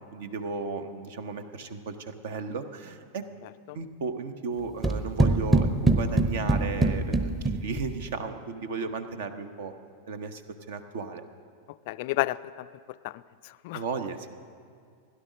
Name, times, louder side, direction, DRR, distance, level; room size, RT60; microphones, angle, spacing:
voice 1, 0.1-3.3 3.7-9.7 10.1-10.4 10.7-11.3 13.7-14.3, right 5 dB, 55° right, 10 dB, 0.9 m, -35 dB
sound 1, 4.8-8.1, right 2 dB, 10° right, 0.9 m, -24 dB
voice 2, 11.9-12.7 13.0-13.8, left 18 dB, 50° left, 16 dB, 0.3 m, -32 dB
16.5 x 11.0 x 6.3 m, 2.2 s
figure-of-eight pair, 90°, 0 cm